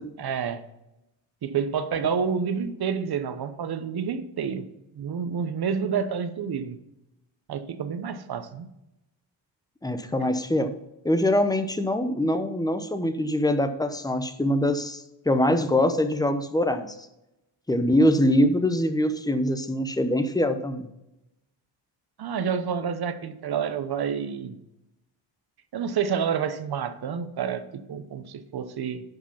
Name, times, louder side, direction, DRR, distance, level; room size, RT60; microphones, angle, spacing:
voice 1, 0.2-0.6 1.4-4.7 4.9-6.8 7.5-8.7 22.2-24.5 25.7-29.0, right 7 dB, 55° right, 0.9 m, -29 dB
voice 2, 9.8-10.7 11.0-16.9 17.7-20.9, left 1 dB, 10° left, 0.8 m, -23 dB
10.5 x 5.0 x 5.8 m
cardioid pair, 105°, 47 cm